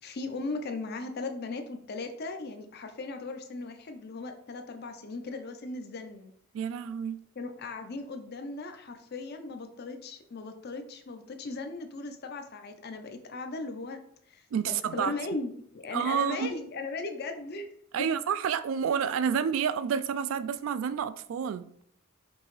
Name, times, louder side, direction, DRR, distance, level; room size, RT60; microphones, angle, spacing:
voice 1, 0.0-6.3 7.4-14.0 14.3-17.7 18.0-18.1, left 3 dB, 50° left, 0.5 m, -38 dB
voice 2, 6.5-7.2 14.5-15.1 15.9-16.5 17.9-21.7, right 7 dB, 70° right, 0.3 m, -29 dB
5.3 x 2.8 x 3.1 m
head